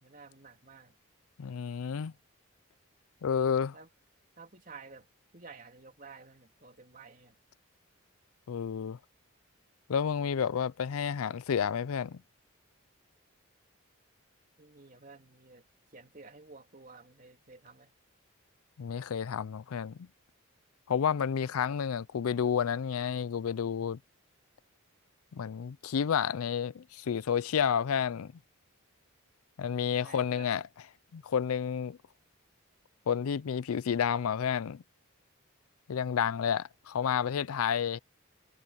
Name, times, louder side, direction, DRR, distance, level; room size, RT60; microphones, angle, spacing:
voice 1, 0.0-0.9 3.7-3.9 4.4-5.1 5.3-7.4 14.6-15.6 15.9-17.9 21.2-21.5 29.9-30.6, right 4 dB, 40° right, 3.0 m, -52 dB
voice 2, 1.4-2.1 3.2-3.7 8.5-9.0 9.9-12.2 18.8-20.0 20.9-24.0 25.3-28.3 29.6-30.6 31.1-32.0 33.1-34.8 35.9-38.0, left 7 dB, 85° left, 0.4 m, -30 dB
head